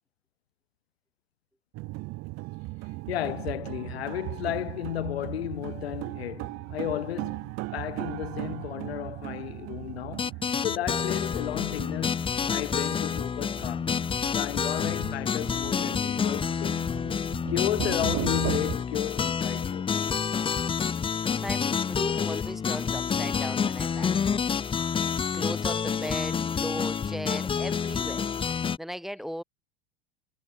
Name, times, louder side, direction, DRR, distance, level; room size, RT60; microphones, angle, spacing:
sound 1, 1.7-18.8, right 23 dB, 55° right, 3.8 m, -38 dB
voice 1, 3.1-14.0 14.3-17.0 17.5-19.9, left 13 dB, 85° left, 4.8 m, -33 dB
sound 2, 10.2-28.8, left 6 dB, 15° left, 0.7 m, -28 dB
voice 2, 21.4-24.2 25.3-28.3 28.8-29.4, equal, ahead, 3.1 m, -37 dB
supercardioid pair, 105°, 30 cm